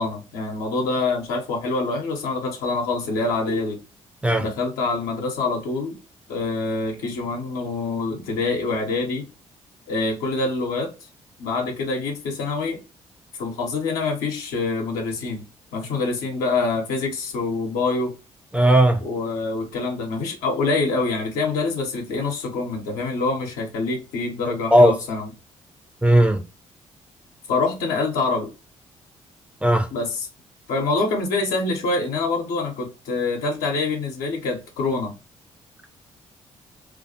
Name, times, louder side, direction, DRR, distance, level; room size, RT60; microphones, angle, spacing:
voice 1, 0.0-3.8 4.4-6.0 6.3-9.3 9.9-10.9 11.4-12.8 13.4-15.4 15.7-18.2 19.0-25.3 27.5-28.5 29.9-30.3 30.7-35.1, left 3 dB, 65° left, 0.7 m, -25 dB
voice 2, 18.5-19.0 24.7-25.0 26.0-26.4 29.6-29.9, right 1 dB, 5° right, 0.5 m, -15 dB
2.3 x 2.2 x 2.6 m
figure-of-eight pair, 40°, 16 cm